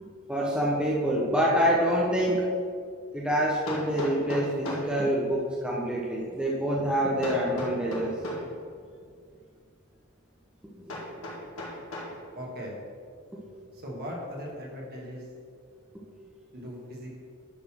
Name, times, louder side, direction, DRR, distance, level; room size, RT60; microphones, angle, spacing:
voice 1, 0.3-2.4 3.1-8.1 10.7-11.0 13.3-13.4 15.9-16.0, equal, 5° right, -5 dB, 0.8 m, -26 dB
Hammer, 3.7-5.0 7.2-8.5 10.9-12.2, left 1 dB, 85° left, 2.0 m, -36 dB
voice 2, 12.3-12.8 13.8-15.2 16.5-17.2, equal, 50° right, -2 dB, 1.9 m, -38 dB
10.5 x 4.2 x 6.1 m, 2.3 s
head